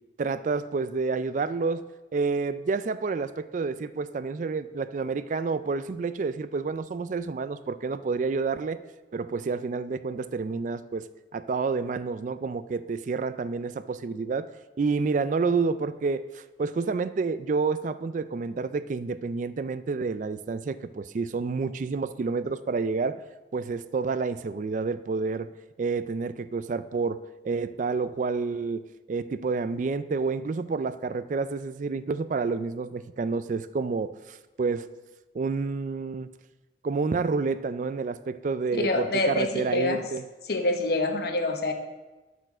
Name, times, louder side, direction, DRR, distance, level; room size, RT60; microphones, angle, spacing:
voice 1, 0.2-1.8 2.1-8.8 9.1-14.5 14.8-23.2 23.5-25.5 25.8-28.8 29.1-34.9 35.3-36.3 36.8-40.2, right 4 dB, 45° right, 14 dB, 0.3 m, -29 dB
voice 2, 38.7-40.0 40.5-41.7, left 2 dB, 60° left, 4 dB, 1.1 m, -26 dB
12.0 x 4.5 x 6.1 m, 1.2 s
head